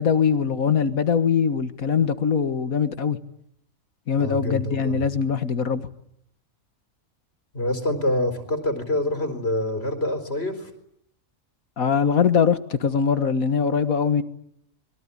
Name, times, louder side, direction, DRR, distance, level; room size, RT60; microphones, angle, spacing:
voice 1, 0.0-3.2 4.1-5.8 11.8-14.2, left 6 dB, 75° left, 12 dB, 2.0 m, -22 dB
voice 2, 4.2-5.1 7.5-10.7, left 1 dB, 45° left, 8 dB, 4.5 m, -26 dB
26.0 x 22.5 x 9.9 m, 0.74 s
omnidirectional pair, 1.5 m